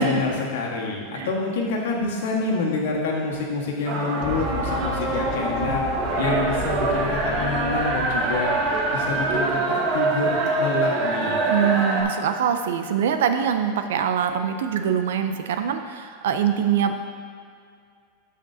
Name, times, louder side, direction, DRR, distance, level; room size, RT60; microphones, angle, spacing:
voice 1, 0.0-5.8 6.2-8.6 8.9-11.4, left 3 dB, 80° left, -2 dB, 1.5 m, -27 dB
sound 1, 3.9-12.0, right 2 dB, 40° right, 1.2 m, -24 dB
sound 2, 4.2-10.2, left 3 dB, 50° left, 0.9 m, -34 dB
voice 2, 11.5-17.0, right 8 dB, 85° right, 7 dB, 0.6 m, -23 dB
13.0 x 5.1 x 2.8 m, 2.1 s
supercardioid pair, 145°, 0 cm